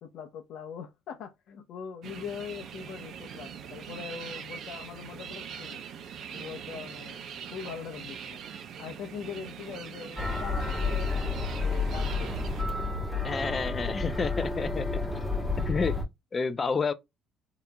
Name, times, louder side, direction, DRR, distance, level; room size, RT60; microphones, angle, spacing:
voice 1, 0.0-5.8 6.3-8.4 8.8-12.3, left 7 dB, 70° left, 0.8 m, -42 dB
sound 1, 2.0-12.6, right 7 dB, 60° right, 0.7 m, -42 dB
sound 2, 10.2-16.1, left 3 dB, 10° left, 1.1 m, -30 dB
voice 2, 13.2-14.9 15.6-15.9 16.3-16.9, left 5 dB, 30° left, 0.5 m, -29 dB
3.8 x 2.9 x 2.3 m
cardioid pair, 125°, 0 cm